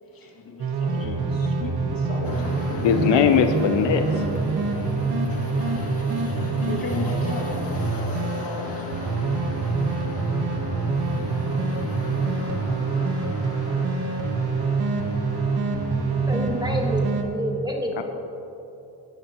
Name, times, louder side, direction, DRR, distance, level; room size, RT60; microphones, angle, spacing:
voice 1, 0.0-2.9 5.3-9.2, left 3 dB, 50° left, -1 dB, 2.5 m, -37 dB
sound 1, 0.6-17.2, right 3 dB, 60° right, 1.3 m, -26 dB
sound 2, 2.2-17.1, left 2 dB, 35° left, 1.9 m, -37 dB
voice 2, 2.8-4.1 18.0-18.1, left 7 dB, 85° left, 7 dB, 0.7 m, -19 dB
voice 3, 16.3-18.0, equal, 10° right, 0 dB, 1.6 m, -28 dB
17.5 x 10.5 x 3.0 m, 2.9 s
cardioid pair, 80°, 43 cm